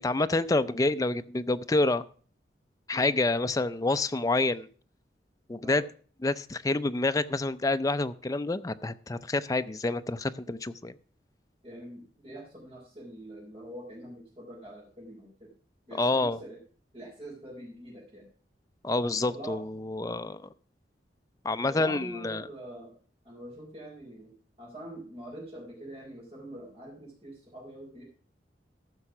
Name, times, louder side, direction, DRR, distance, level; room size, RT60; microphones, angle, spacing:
voice 1, 0.0-2.0 2.9-4.7 5.5-5.8 6.2-10.9 16.0-16.4 18.8-20.4 21.4-22.5, left 2 dB, 20° left, 11 dB, 0.4 m, -28 dB
voice 2, 11.6-15.5 15.9-16.6 16.9-18.3 19.3-19.6 21.6-22.9 23.2-28.0, right 1 dB, 35° right, -6 dB, 4.2 m, -44 dB
14.5 x 5.8 x 6.0 m, 0.44 s
head